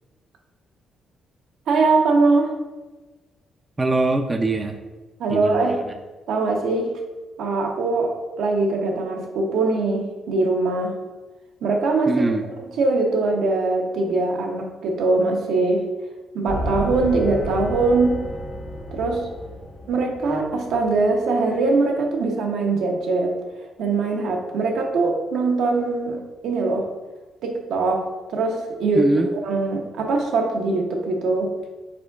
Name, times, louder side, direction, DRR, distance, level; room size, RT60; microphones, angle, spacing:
voice 1, 1.7-2.5 5.2-5.7 6.3-6.9 7.4-10.9 11.6-12.1 12.8-15.8 16.3-18.2 18.9-19.3 19.9-23.3 23.8-26.8 27.4-29.1 29.4-31.5, right 3 dB, 80° right, 1 dB, 0.7 m, -22 dB
voice 2, 3.8-4.8 5.3-6.0 12.1-12.4 28.9-29.3, right 2 dB, 20° right, 5 dB, 0.3 m, -22 dB
sound 1, 16.5-21.2, equal, 35° left, 0.8 m, -32 dB
5.0 x 3.7 x 2.3 m, 1.2 s
cardioid pair, 90°, 0 cm